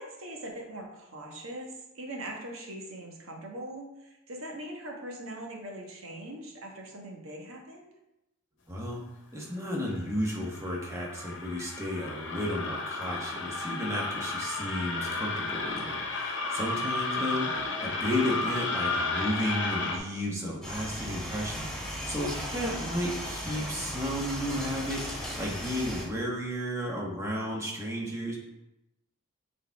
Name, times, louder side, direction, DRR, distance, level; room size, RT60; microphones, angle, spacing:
voice 1, 0.0-7.9 17.1-17.6, right 1 dB, 80° right, 0 dB, 1.3 m, -41 dB
voice 2, 8.7-9.0 9.3-28.4, equal, 15° right, -3 dB, 1.3 m, -33 dB
sound 1, 10.0-20.0, left 3 dB, 60° left, 1.0 m, -33 dB
sound 2, 20.6-26.1, equal, 5° left, 1.4 m, -36 dB
7.0 x 4.2 x 3.5 m, 0.91 s
head